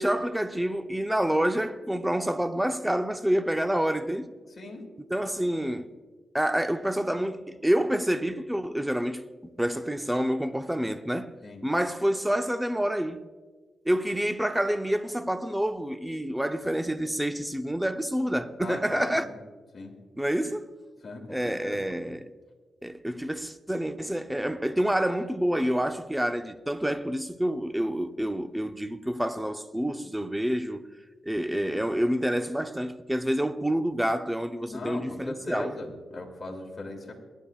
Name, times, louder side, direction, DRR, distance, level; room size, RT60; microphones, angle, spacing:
voice 1, 0.0-4.3 5.1-5.9 6.3-9.2 9.6-11.3 11.6-13.2 13.8-19.3 20.2-20.7 21.3-22.3 22.8-30.8 31.2-35.7, equal, 5° right, 0.6 m, -28 dB
voice 2, 4.5-4.8 11.4-11.6 18.6-19.4 19.7-20.0 21.0-21.9 34.7-37.1, left 2 dB, 40° left, 2.4 m, -39 dB
22.5 x 10.0 x 2.4 m
cardioid pair, 80°, 0 cm